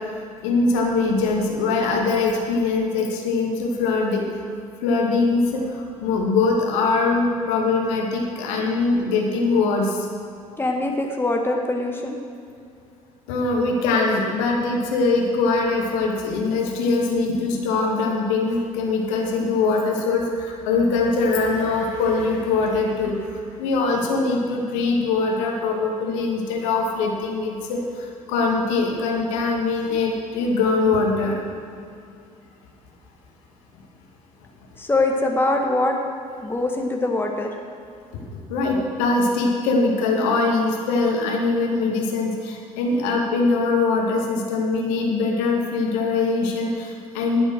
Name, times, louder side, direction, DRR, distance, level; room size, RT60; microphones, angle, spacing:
voice 1, 0.4-4.2 4.8-10.1 13.3-23.1 23.6-31.4 38.5-47.4, left 3 dB, 60° left, 0 dB, 2.4 m, -22 dB
voice 2, 10.6-12.2 34.8-36.0 36.4-37.5, left 2 dB, 10° left, 1 dB, 1.8 m, -23 dB
20.0 x 8.0 x 6.4 m, 2.4 s
figure-of-eight pair, 60°, 18 cm